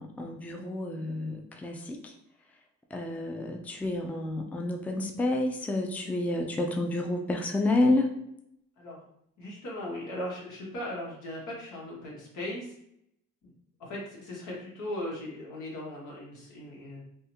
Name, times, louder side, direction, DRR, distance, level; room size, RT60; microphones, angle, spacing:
voice 1, 0.0-2.1 2.9-8.1, left 2 dB, 5° left, 3 dB, 0.4 m, -29 dB
voice 2, 9.4-12.7 13.8-17.0, left 1 dB, 85° left, -4 dB, 1.4 m, -38 dB
3.5 x 2.3 x 2.9 m, 0.75 s
cardioid pair, 90°, 30 cm